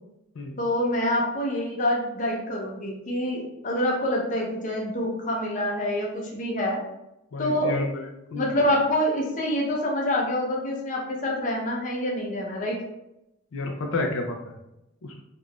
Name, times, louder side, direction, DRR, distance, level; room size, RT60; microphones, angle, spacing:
voice 1, 0.6-6.8 7.4-7.8 8.3-12.8, left 1 dB, 40° left, -1 dB, 0.6 m, -26 dB
voice 2, 7.3-8.4 13.5-14.6 15.0-15.2, left 2 dB, 85° left, 2 dB, 0.4 m, -30 dB
3.4 x 2.5 x 2.2 m, 0.88 s
head